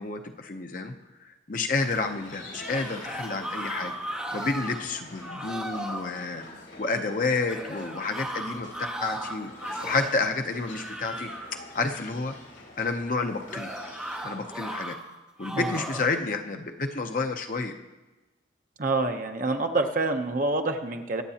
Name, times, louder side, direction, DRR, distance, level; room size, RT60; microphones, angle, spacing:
voice 1, 0.0-9.5 9.8-12.4 12.8-13.7 14.2-15.0 15.4-17.7, left 3 dB, 45° left, 5 dB, 0.7 m, -30 dB
sound 1, 1.7-14.6, left 2 dB, 75° left, 3.6 m, -46 dB
sound 2, 2.4-4.8 5.2-6.1 7.5-10.2 10.6-11.6 13.5-15.0 15.4-16.1, right 1 dB, 5° right, 1.1 m, -36 dB
voice 2, 18.8-21.2, right 2 dB, 45° right, 5 dB, 0.8 m, -27 dB
23.5 x 8.1 x 2.9 m, 1.1 s
head